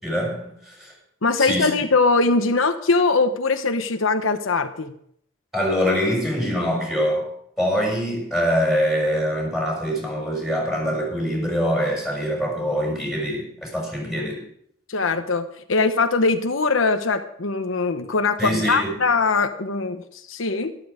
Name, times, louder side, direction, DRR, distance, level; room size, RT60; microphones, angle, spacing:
voice 1, 0.0-0.9 1.4-1.7 5.5-7.3 7.6-14.5 18.4-19.0, equal, ahead, -2 dB, 6.5 m, -24 dB
voice 2, 1.2-4.9 14.9-20.8, left 3 dB, 80° left, 7 dB, 1.0 m, -21 dB
13.0 x 12.5 x 5.0 m, 0.68 s
head